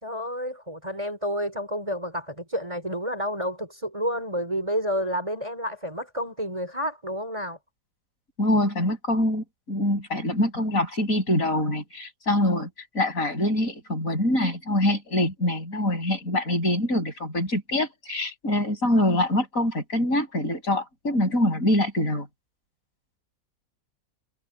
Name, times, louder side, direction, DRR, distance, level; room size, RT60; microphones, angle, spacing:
voice 1, 0.0-7.6, equal, 20° right, 4.3 m, -30 dB
voice 2, 8.4-12.7 12.9-22.3, left 1 dB, 65° left, 7.7 m, -24 dB
omnidirectional pair, 1.6 m